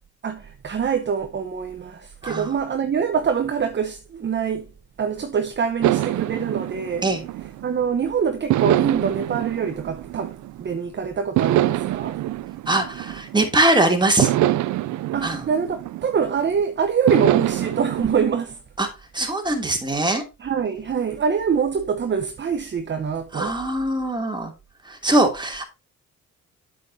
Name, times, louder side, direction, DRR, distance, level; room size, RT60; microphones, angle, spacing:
voice 1, 0.2-4.7 5.0-7.1 7.6-10.3 10.6-12.2 15.1-18.6 20.4-23.5, right 6 dB, 35° right, 1.0 m, -24 dB
voice 2, 2.2-2.5 7.0-7.2 12.7-14.3 15.2-15.4 18.8-18.9 19.1-20.2 23.3-24.5 24.8-25.7, right 2 dB, 15° right, 2.8 m, -21 dB
sound 1, 5.8-7.9 8.5-10.8 11.4-13.6 14.2-16.5 17.1-18.2, right 14 dB, 75° right, 0.6 m, -24 dB
8.2 x 7.8 x 2.7 m
cardioid pair, 90°, 30 cm